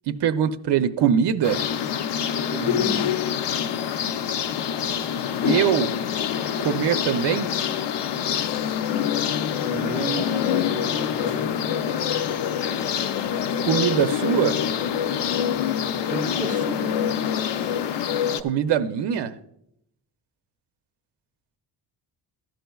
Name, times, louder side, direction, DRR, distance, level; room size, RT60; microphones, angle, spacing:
voice 1, 0.1-1.6 5.4-5.9 6.6-7.5 13.6-14.6 18.4-19.3, right 8 dB, 85° right, 9 dB, 0.7 m, -22 dB
sound 1, 1.4-18.4, left 9 dB, 90° left, 0.6 m, -25 dB
voice 2, 2.5-3.2 9.6-11.6 16.1-17.2, right 3 dB, 20° right, 3 dB, 0.9 m, -33 dB
14.5 x 11.5 x 2.3 m, 0.78 s
wide cardioid pair, 155°, 40 cm